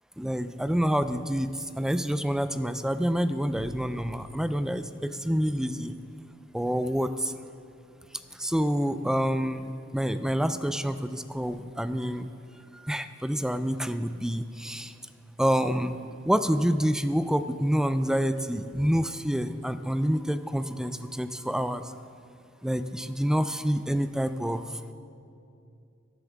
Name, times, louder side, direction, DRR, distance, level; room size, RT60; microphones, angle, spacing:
voice 1, 0.2-1.5 1.8-5.9 6.5-7.3 8.4-12.3 12.8-14.9 15.4-21.8 22.6-24.6, equal, 5° right, 11 dB, 0.3 m, -27 dB
17.5 x 11.0 x 3.5 m, 2.5 s
head